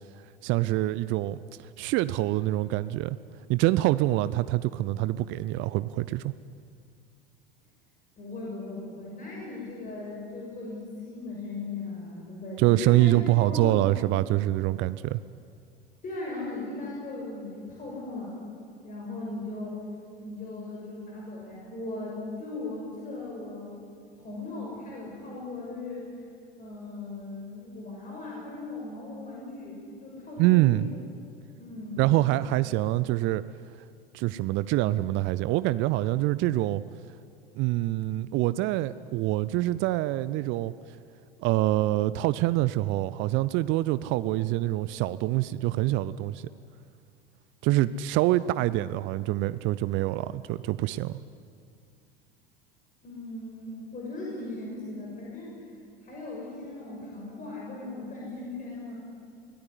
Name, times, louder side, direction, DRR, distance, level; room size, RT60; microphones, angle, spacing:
voice 1, 0.4-3.2 3.5-6.3 12.6-15.2 30.4-30.9 32.0-33.4 34.1-36.8 37.6-40.7 41.4-46.5 47.6-51.2, right 16 dB, 40° right, 16 dB, 0.6 m, -25 dB
voice 2, 8.2-13.9 16.0-18.3 18.8-19.8 20.2-23.7 24.2-26.0 26.6-31.0 31.6-32.0 53.0-55.5 56.0-58.9, left 2 dB, 25° left, -3 dB, 6.4 m, -38 dB
23.5 x 17.5 x 9.8 m, 2.3 s
figure-of-eight pair, 75°, 30 cm